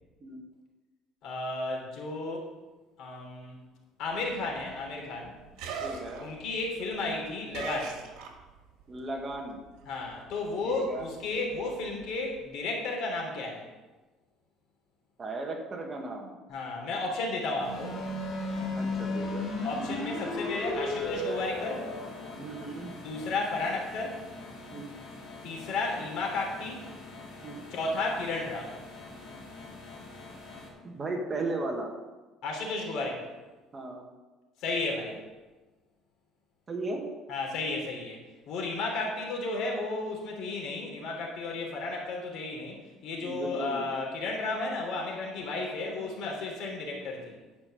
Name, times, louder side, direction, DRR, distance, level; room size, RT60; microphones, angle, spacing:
voice 1, 1.2-2.5 3.0-3.6 4.0-5.3 6.2-8.0 9.9-13.7 16.5-18.0 19.6-21.8 23.0-24.2 25.4-26.8 27.7-28.8 32.4-33.3 34.6-35.2 37.3-38.2 38.5-47.3, left 3 dB, 60° left, -1 dB, 3.0 m, -33 dB
sound 1, 4.1-8.8 9.1-12.4, right 5 dB, 80° right, 1.7 m, -42 dB
voice 2, 5.8-6.3 8.9-9.6 10.6-11.1 15.2-16.4 18.8-19.5 22.3-22.9 24.7-24.9 27.4-27.6 30.8-31.9 33.7-34.1 36.7-37.0 43.2-43.8, right 2 dB, 25° right, 2 dB, 1.2 m, -36 dB
sound 2, 17.6-30.7, left 2 dB, 35° left, 3.0 m, -37 dB
10.5 x 5.2 x 6.7 m, 1.2 s
cardioid pair, 155°, 0 cm